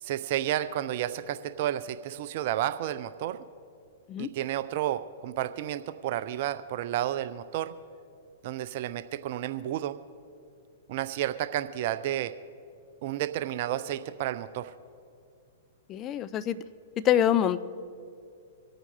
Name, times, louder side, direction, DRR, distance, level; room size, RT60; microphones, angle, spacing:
voice 1, 0.0-3.4 4.2-7.7 8.4-10.0 10.9-12.3 13.0-14.7, right 12 dB, 55° right, 12 dB, 0.5 m, -31 dB
voice 2, 15.9-16.6 17.0-17.6, left 10 dB, 30° left, 14 dB, 0.6 m, -25 dB
26.5 x 8.9 x 3.3 m, 2.4 s
hypercardioid pair, 115°, 0 cm